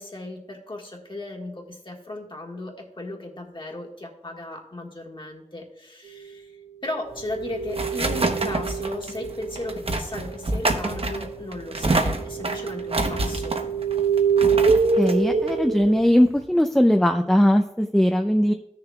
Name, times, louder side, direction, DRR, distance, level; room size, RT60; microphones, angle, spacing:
voice 1, 0.0-6.5 6.8-13.6, left 1 dB, 45° left, 0 dB, 1.6 m, -36 dB
sound 1, 7.1-16.4, right 2 dB, 55° right, 0.9 m, -28 dB
sound 2, 7.2-10.3 10.7-16.0, right 5 dB, 85° right, 0.7 m, -26 dB
voice 2, 15.0-18.5, equal, 5° left, 5 dB, 0.5 m, -19 dB
15.0 x 6.7 x 2.4 m, 0.85 s
wide cardioid pair, 75°, 12 cm